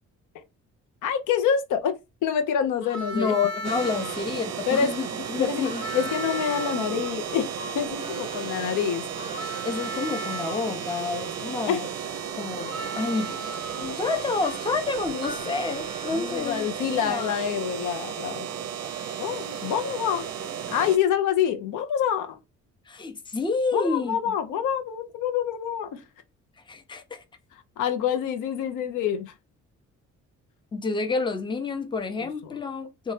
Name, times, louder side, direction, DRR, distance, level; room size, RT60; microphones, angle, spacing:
voice 1, 1.0-1.9 2.2-3.3 4.7-4.9 5.4-5.6 5.9-7.5 7.7-9.0 11.7-11.8 16.1-18.5 19.2-20.3 20.7-22.4 23.7-26.0 27.8-29.3, left 8 dB, 80° left, 0.6 m, -26 dB
Harmonica, 2.8-4.2 5.6-10.6 12.6-16.5, right 1 dB, 60° left, 1.3 m, -38 dB
voice 2, 3.1-5.8 9.6-11.9 12.4-13.4 13.8-17.4 19.0-19.1 22.9-24.2 26.7-27.2 30.7-33.1, left 4 dB, 15° left, 0.5 m, -29 dB
sound 1, 3.6-21.0, right 8 dB, 60° right, 0.5 m, -34 dB
2.7 x 2.2 x 3.1 m
cardioid pair, 90°, 30 cm